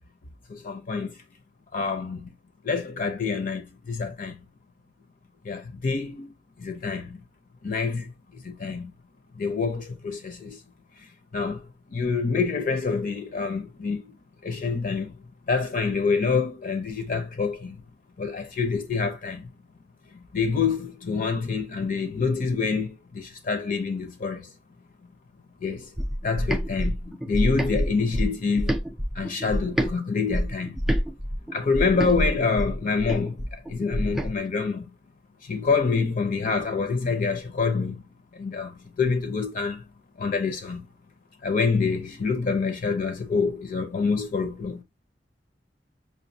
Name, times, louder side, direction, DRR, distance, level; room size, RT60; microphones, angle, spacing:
voice 1, 0.5-1.2 1.7-2.3 2.6-4.4 5.4-7.2 7.6-8.9 9.3-10.6 11.0-14.1 14.4-17.8 18.2-19.5 20.1-24.5 25.0-25.1 25.6-25.9 26.2-28.8 29.1-30.9 31.5-34.9 35.4-38.0 38.3-39.8 40.2-40.9 41.4-44.8, left 4 dB, 50° left, 0.6 m, -27 dB
sound 1, 26.0-29.9 30.3-34.3, equal, ahead, 0.3 m, -27 dB
5.3 x 2.2 x 2.6 m
head